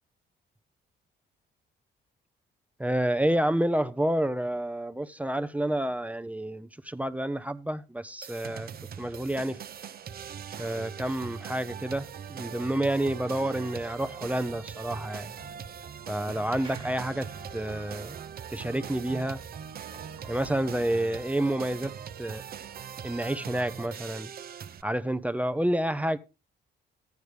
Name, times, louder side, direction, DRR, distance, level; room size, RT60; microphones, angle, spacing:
voice 1, 2.8-8.7 9.0-9.6 10.6-15.4 16.1-18.2 18.5-19.4 20.3-22.4 23.0-24.3 24.8-26.2, right 1 dB, 5° right, 0.5 m, -29 dB
sound 1, 8.2-24.8, right 8 dB, 50° right, 0.6 m, -41 dB
sound 2, 14.3-20.7, right 1 dB, 25° right, 1.5 m, -53 dB
13.5 x 9.4 x 3.2 m
cardioid pair, 90°, 20 cm